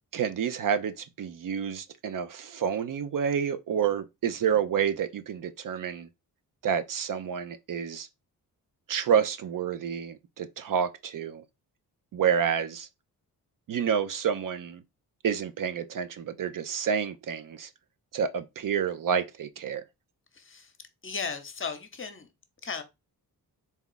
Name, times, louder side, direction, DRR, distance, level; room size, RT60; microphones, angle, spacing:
voice 1, 0.1-6.1 6.6-8.1 8.9-11.4 12.1-12.9 13.7-14.8 15.2-17.7 18.1-19.8, right 7 dB, 55° right, 0.5 m, -29 dB
voice 2, 20.3-20.7 21.0-22.3 22.6-22.8, left 5 dB, 30° left, 0.8 m, -36 dB
4.1 x 2.3 x 3.8 m
cardioid pair, 75°, 39 cm